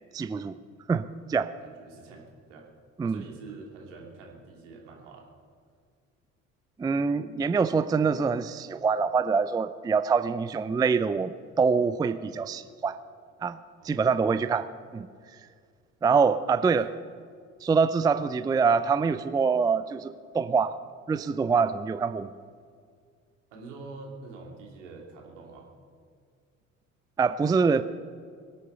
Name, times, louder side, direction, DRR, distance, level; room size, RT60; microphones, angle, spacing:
voice 1, 0.1-0.6 0.9-1.5 3.0-3.2 6.8-13.0 13.4-13.6 13.8-15.1 16.0-16.9 17.6-20.8 21.1-22.3 27.2-27.8, right 5 dB, 10° right, 14 dB, 0.4 m, -25 dB
voice 2, 1.6-2.7 3.0-5.3 13.8-14.2 23.5-25.7, right 3 dB, 70° right, 0 dB, 2.8 m, -45 dB
23.5 x 8.3 x 6.8 m, 2.1 s
figure-of-eight pair, 50°, 38 cm